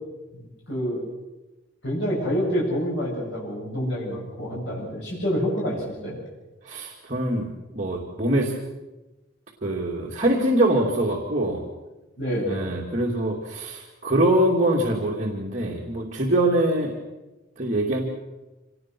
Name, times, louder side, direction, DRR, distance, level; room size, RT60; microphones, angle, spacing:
voice 1, 0.3-1.0 1.8-6.2 12.2-12.7, equal, 65° left, -4 dB, 7.8 m, -27 dB
voice 2, 6.6-7.5 7.7-8.5 9.6-11.7 12.5-17.0 17.6-18.0, right 1 dB, 40° right, -3 dB, 2.7 m, -23 dB
26.0 x 19.5 x 6.2 m, 1.1 s
head